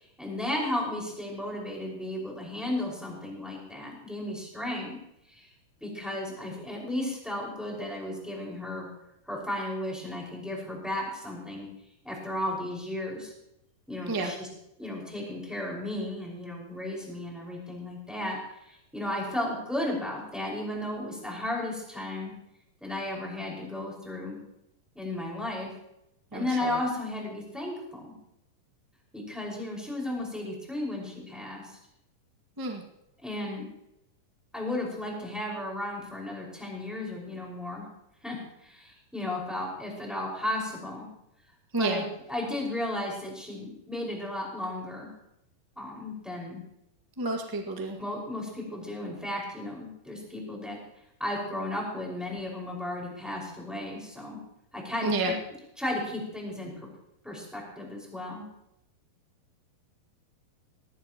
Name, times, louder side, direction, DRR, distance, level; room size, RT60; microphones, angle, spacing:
voice 1, 0.2-5.0 5.3-5.5 5.8-8.9 9.2-11.7 12.0-13.3 13.9-14.5 14.8-22.3 22.8-24.4 24.9-25.7 26.3-28.1 29.1-31.8 33.2-33.7 34.5-37.8 38.2-41.1 41.8-45.1 45.8-46.6 48.0-50.8 51.2-54.4 54.7-55.3 55.8-56.7 57.2-58.4, left 1 dB, ahead, -3 dB, 5.1 m, -34 dB
voice 2, 26.3-26.8 32.6-32.8 41.7-42.0 47.2-48.0 55.0-55.3, right 3 dB, 30° right, 1 dB, 0.4 m, -30 dB
19.5 x 17.0 x 3.0 m, 0.84 s
omnidirectional pair, 4.2 m